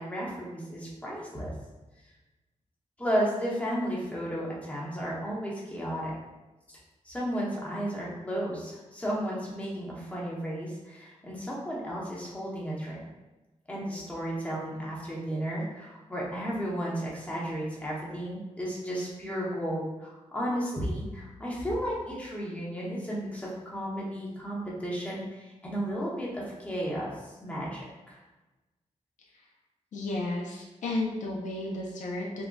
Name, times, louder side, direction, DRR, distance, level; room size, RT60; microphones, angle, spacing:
voice 1, 0.0-1.5 3.0-6.1 6.7-6.8 7.0-13.0 13.7-28.2, equal, 10° left, -6 dB, 0.8 m, -33 dB
voice 2, 29.9-32.4, left 2 dB, 80° left, -2 dB, 0.5 m, -33 dB
3.7 x 2.1 x 2.2 m, 1.1 s
wide cardioid pair, 120°, 13 cm